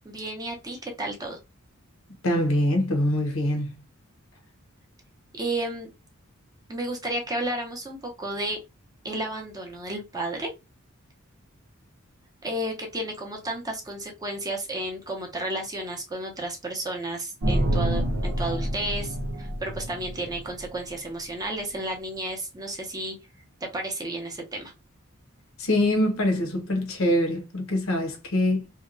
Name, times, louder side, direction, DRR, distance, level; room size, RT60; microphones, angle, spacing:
voice 1, 0.0-1.4 5.3-5.9 6.7-8.6 9.0-10.5 12.4-23.1 23.6-24.7, right 1 dB, 15° right, 0.6 m, -32 dB
voice 2, 2.2-3.8 25.6-28.7, left 1 dB, 70° left, 0.8 m, -24 dB
sound 1, 17.4-20.8, right 1 dB, 85° right, 0.8 m, -27 dB
2.8 x 2.2 x 2.4 m
head